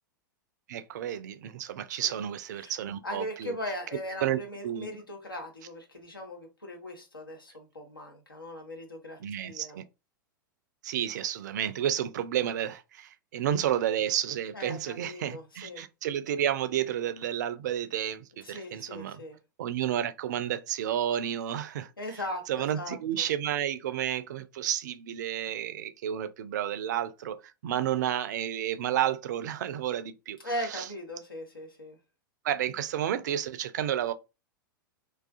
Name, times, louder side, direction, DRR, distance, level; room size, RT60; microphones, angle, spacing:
voice 1, 0.7-3.5 4.2-4.9 9.2-9.8 10.8-19.2 19.6-21.9 22.5-30.4 30.7-30.9 32.4-34.1, right 10 dB, 55° right, 0.3 m, -31 dB
voice 2, 3.0-9.8 14.5-15.8 18.4-19.4 22.0-23.3 30.4-32.0, left 1 dB, 80° left, 0.9 m, -39 dB
2.3 x 2.3 x 2.4 m
figure-of-eight pair, 95°, 11 cm